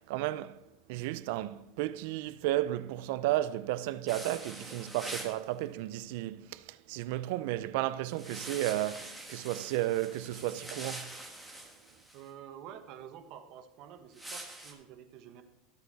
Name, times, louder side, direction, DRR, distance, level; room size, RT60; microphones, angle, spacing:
voice 1, 0.1-0.6 0.9-11.1, right 15 dB, 75° right, 0.5 m, -33 dB
sound 1, 4.1-5.4 8.1-12.2 14.1-14.7, right 1 dB, ahead, 1.5 m, -44 dB
voice 2, 12.1-15.4, right 9 dB, 55° right, 1.3 m, -49 dB
14.0 x 8.0 x 4.1 m
supercardioid pair, 145°, 0 cm